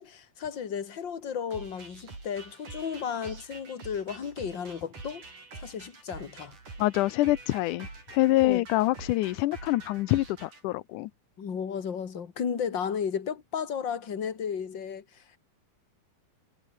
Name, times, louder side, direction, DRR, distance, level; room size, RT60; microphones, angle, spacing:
voice 1, 0.0-5.2 5.6-6.6 8.4-8.6 11.4-15.4, left 7 dB, 40° left, 2.8 m, -34 dB
sound 1, 1.5-10.6, right 3 dB, 85° right, 9.8 m, -46 dB
voice 2, 6.8-11.1, left 17 dB, 90° left, 2.3 m, -26 dB
omnidirectional pair, 3.5 m